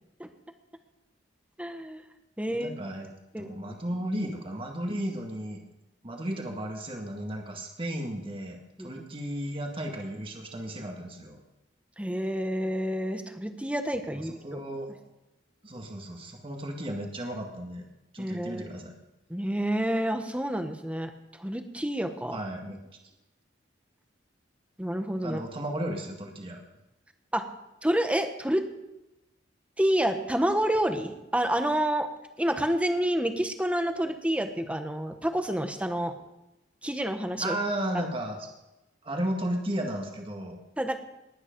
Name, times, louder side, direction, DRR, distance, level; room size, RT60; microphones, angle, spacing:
voice 1, 1.6-2.0 2.4-2.7 3.3-3.5 8.8-8.9 12.0-14.6 18.2-18.7 19.3-22.4 24.8-25.4 27.3-27.4 27.8-28.6 29.8-32.1 32.4-36.1 36.8-37.6 40.8-41.0, right 1 dB, 5° right, 7 dB, 1.2 m, -28 dB
voice 2, 2.5-3.1 3.4-5.6 6.0-11.4 14.1-14.9 15.6-17.9 18.1-18.9 22.3-22.8 25.2-26.6 37.4-38.5 39.0-40.6, right 1 dB, 30° right, 2 dB, 1.9 m, -34 dB
19.5 x 9.7 x 5.2 m, 0.96 s
head